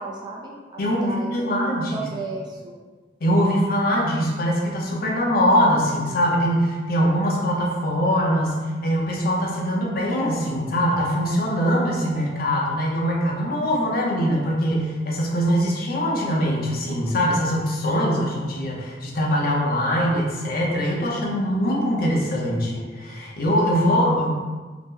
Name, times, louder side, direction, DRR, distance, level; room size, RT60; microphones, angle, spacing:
voice 1, 0.0-2.8, right 3 dB, 25° right, -2 dB, 0.3 m, -34 dB
voice 2, 0.8-2.0 3.2-24.4, equal, 55° left, -2 dB, 0.6 m, -22 dB
2.8 x 2.0 x 3.6 m, 1.4 s
head